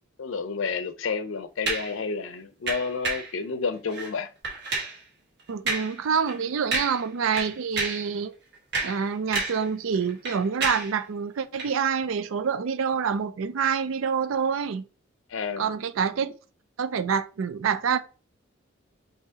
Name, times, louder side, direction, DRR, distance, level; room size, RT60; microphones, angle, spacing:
voice 1, 0.2-4.3 15.3-15.7, left 5 dB, 80° left, 0.6 m, -30 dB
sound 1, 1.7-2.0 2.7-3.3 3.9-4.1 4.4-5.0 5.7-6.0 6.3-6.4 6.7-7.1 7.3-8.1 8.5-9.7 9.9-11.0 11.6-11.7, right 3 dB, 55° right, 1.4 m, -30 dB
voice 2, 5.5-8.3 8.8-14.8 15.6-16.3 16.8-18.0, right 6 dB, 85° right, 0.4 m, -27 dB
5.6 x 2.8 x 2.8 m
head